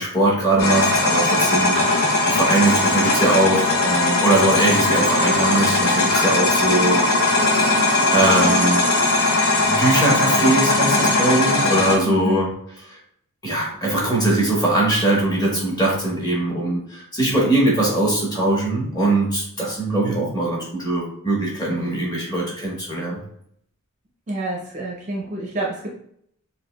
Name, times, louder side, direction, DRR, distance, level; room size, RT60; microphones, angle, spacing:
voice 1, 0.0-7.0 7.6-7.7 8.1-8.9 9.6-12.5 13.4-23.2, right 2 dB, 15° left, -4 dB, 1.1 m, -21 dB
sound 1, 0.6-12.0, left 2 dB, 65° left, 0.7 m, -19 dB
voice 2, 12.0-12.4 24.3-25.9, right 1 dB, 35° right, -2 dB, 0.6 m, -28 dB
5.2 x 2.3 x 2.2 m, 0.68 s
head